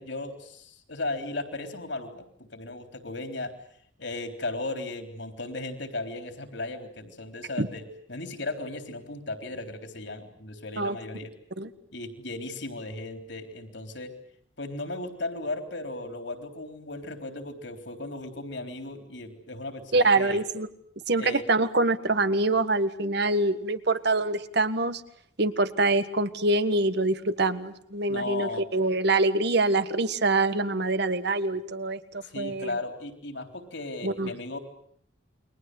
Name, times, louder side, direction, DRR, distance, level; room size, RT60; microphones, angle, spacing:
voice 1, 0.0-3.5 4.0-11.3 11.9-14.1 14.6-20.4 21.2-21.4 28.1-28.6 32.2-34.6, left 2 dB, 60° left, 7 dB, 3.8 m, -36 dB
voice 2, 19.9-20.7 21.1-25.0 25.4-32.7 34.0-34.3, right 2 dB, 55° right, 11 dB, 1.6 m, -25 dB
29.0 x 23.0 x 7.9 m, 0.65 s
head